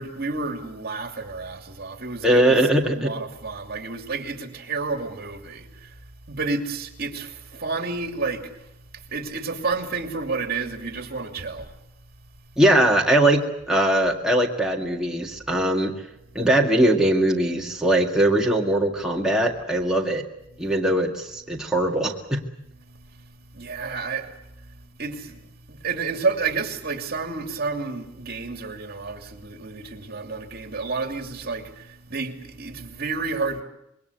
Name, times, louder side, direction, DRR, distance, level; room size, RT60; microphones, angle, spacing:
voice 1, 0.0-2.6 3.0-8.7 8.9-11.8 20.5-20.7 21.5-21.6 22.8-25.4 25.7-33.6, right 4 dB, 50° right, 2.8 m, -31 dB
voice 2, 2.2-3.1 12.6-15.9 16.4-20.3 20.6-22.4, right 1 dB, 5° right, 2.0 m, -21 dB
26.0 x 22.0 x 8.2 m
head